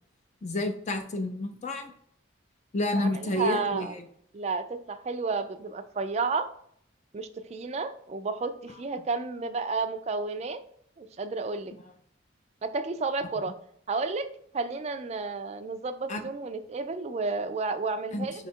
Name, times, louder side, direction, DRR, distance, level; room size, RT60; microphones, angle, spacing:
voice 1, 0.4-1.9 2.7-4.0 16.1-16.2 18.1-18.5, left 1 dB, 35° left, 6 dB, 0.4 m, -30 dB
voice 2, 3.0-3.9 4.3-6.5 7.1-10.6 11.0-11.7 12.6-13.5 13.9-18.5, right 4 dB, 35° right, 8 dB, 0.3 m, -32 dB
5.0 x 2.3 x 4.3 m, 0.67 s
head